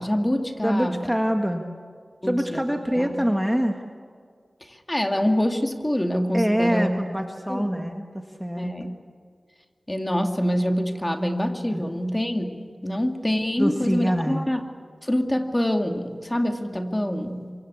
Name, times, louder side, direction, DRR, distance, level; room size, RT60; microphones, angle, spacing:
voice 1, 0.0-1.0 2.2-2.6 3.0-3.2 4.7-6.9 7.5-7.9 8.6-8.9 9.9-14.6 15.0-17.4, equal, 15° left, 5 dB, 2.3 m, -25 dB
voice 2, 0.6-1.6 2.2-3.8 6.3-8.7 11.7-11.8 13.6-14.5, equal, 5° right, 4 dB, 1.7 m, -25 dB
26.5 x 24.5 x 8.4 m, 2.1 s
wide cardioid pair, 85°, 0 cm